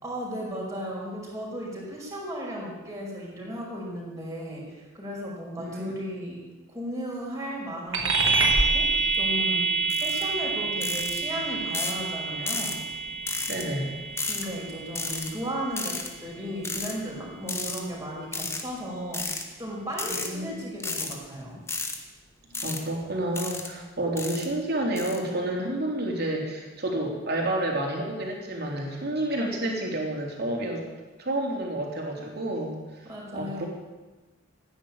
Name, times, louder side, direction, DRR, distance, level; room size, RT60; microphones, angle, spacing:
voice 1, 0.0-6.4 6.7-12.8 14.2-19.3 19.6-21.6 32.2-32.3 33.1-33.7, equal, 15° right, -4 dB, 5.5 m, -35 dB
voice 2, 5.6-5.9 13.5-14.0 20.1-20.6 22.6-30.9 31.2-33.7, right 1 dB, 55° right, 0 dB, 3.6 m, -30 dB
sound 1, 7.9-17.8, right 4 dB, 70° right, 3.2 m, -28 dB
sound 2, 9.9-10.2 10.8-11.2 11.7-12.0 12.5-12.8 13.3-13.6 14.2-14.4 14.9-15.3 15.8-16.1 16.6-16.9 17.5-17.8 18.3-18.6 19.1-19.4 19.9-20.3 20.8-21.1 21.7-22.0 22.5-22.8 23.3-23.7 24.2-24.5 25.0-25.2, left 3 dB, 15° left, 1.4 m, -32 dB
15.5 x 10.0 x 8.8 m, 1.2 s
head